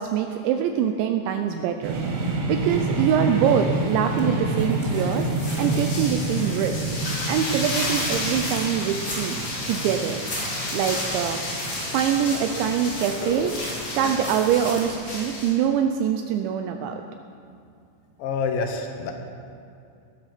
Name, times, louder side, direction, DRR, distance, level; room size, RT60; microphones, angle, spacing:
voice 1, 0.0-2.0 2.5-5.3 5.6-6.9 7.3-9.4 9.7-10.2 10.7-11.4 11.9-13.6 14.0-17.0, right 9 dB, 85° right, 6 dB, 2.6 m, -24 dB
sound 1, 1.8-13.6, right 2 dB, 60° right, 3.7 m, -28 dB
sound 2, 3.3-15.0, left 1 dB, 20° left, 3.0 m, -37 dB
sound 3, 5.4-15.5, left 1 dB, 60° left, 7.1 m, -32 dB
voice 2, 18.2-19.1, left 5 dB, 80° left, 3 dB, 2.0 m, -27 dB
19.5 x 11.5 x 5.9 m, 2.5 s
omnidirectional pair, 5.9 m